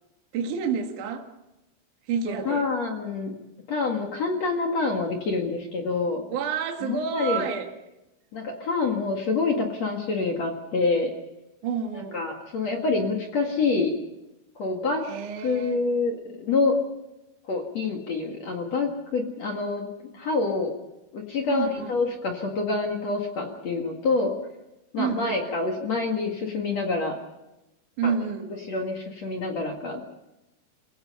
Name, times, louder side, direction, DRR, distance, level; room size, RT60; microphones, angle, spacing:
voice 1, 0.3-1.3 2.1-2.7 6.3-7.7 11.6-12.2 15.0-15.8 21.5-22.0 25.0-25.4 28.0-28.5, right 6 dB, 50° right, 3 dB, 2.8 m, -29 dB
voice 2, 2.3-3.4 3.7-6.2 6.8-7.5 8.3-11.1 11.9-13.9 14.6-15.0 15.4-16.8 17.5-19.9 20.1-20.7 21.1-24.4 24.9-27.2 28.0-28.1 28.7-30.0, left 3 dB, 50° left, 2 dB, 2.1 m, -27 dB
28.0 x 17.5 x 5.7 m, 0.96 s
omnidirectional pair, 5.6 m